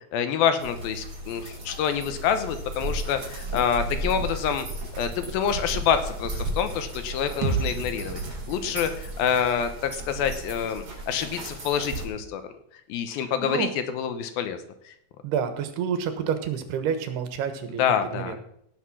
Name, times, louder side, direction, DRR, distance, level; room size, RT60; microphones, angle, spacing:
voice 1, 0.1-4.7 5.0-8.2 8.5-12.4 12.9-14.9 17.8-18.4, left 8 dB, 75° left, 9 dB, 2.6 m, -27 dB
sound 1, 0.6-12.1, right 1 dB, 35° right, 4.3 m, -35 dB
sound 2, 7.4-11.3, right 4 dB, 60° right, 2.5 m, -34 dB
voice 2, 15.2-17.8 18.1-18.4, right 7 dB, 85° right, 8 dB, 3.3 m, -28 dB
17.0 x 6.6 x 6.2 m, 0.72 s
omnidirectional pair, 4.5 m